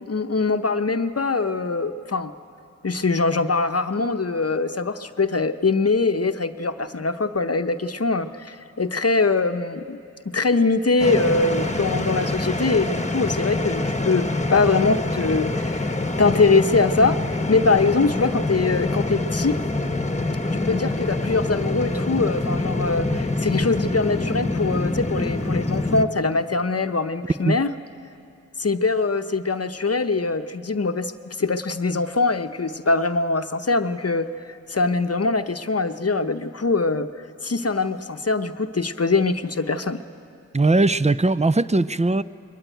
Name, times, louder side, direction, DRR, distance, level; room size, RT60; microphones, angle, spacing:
voice 1, 0.0-2.3 2.8-10.0 10.3-15.9 16.2-19.6 20.5-27.7 28.6-37.1 37.4-40.0, left 3 dB, 55° left, 8 dB, 0.8 m, -23 dB
sound 1, 11.0-26.0, left 2 dB, 25° left, 1.2 m, -25 dB
voice 2, 40.5-42.2, right 2 dB, 25° right, 15 dB, 0.5 m, -19 dB
22.5 x 19.0 x 9.2 m, 2.5 s
wide cardioid pair, 50°, 30 cm